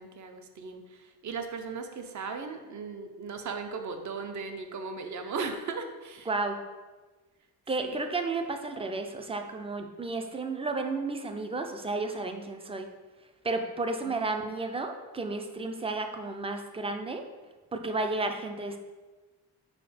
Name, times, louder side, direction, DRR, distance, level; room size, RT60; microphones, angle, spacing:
voice 1, 0.0-6.3 7.8-8.0 14.0-14.1, right 4 dB, 45° right, 6 dB, 0.7 m, -37 dB
voice 2, 6.3-6.6 7.7-12.9 13.4-17.2 17.7-18.8, right 3 dB, 15° right, 6 dB, 0.4 m, -32 dB
4.9 x 4.6 x 5.0 m, 1.3 s
wide cardioid pair, 165°, 39 cm